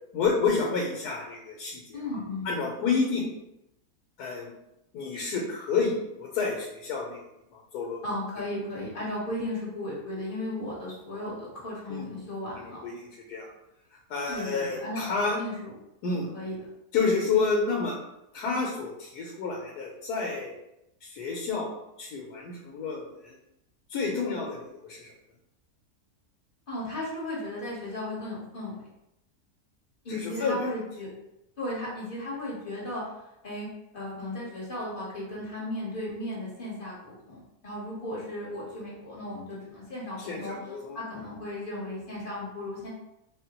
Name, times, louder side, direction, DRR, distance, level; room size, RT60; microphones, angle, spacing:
voice 1, 0.1-2.0 2.4-3.2 4.2-4.5 4.9-7.2 7.5-8.0 11.9-12.1 12.6-13.5 14.1-15.4 16.0-16.3 16.9-18.0 18.3-20.5 21.0-21.7 22.0-23.3 23.9-25.1 30.1-30.6 40.2-41.0, left 4 dB, 85° left, -2 dB, 1.2 m, -29 dB
voice 2, 1.9-2.5 8.0-12.8 14.3-15.7 16.3-16.6 26.7-28.8 30.0-31.1 31.6-33.1 33.4-33.7 33.9-42.9, left 1 dB, 40° left, -6 dB, 1.1 m, -35 dB
3.8 x 2.1 x 2.9 m, 0.87 s
omnidirectional pair, 1.7 m